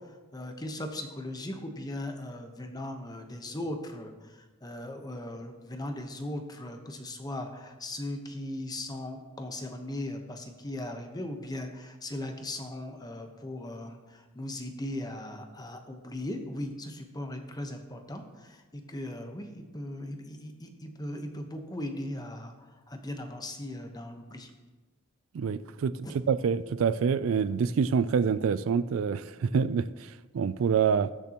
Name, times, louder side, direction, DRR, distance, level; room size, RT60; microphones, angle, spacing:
voice 1, 0.3-4.1 4.6-14.0 14.3-22.5 22.9-24.5 26.0-26.1, left 1 dB, 20° left, 5 dB, 1.0 m, -38 dB
voice 2, 25.3-31.1, right 6 dB, 70° right, 15 dB, 0.4 m, -27 dB
19.5 x 6.8 x 3.0 m, 1.2 s
head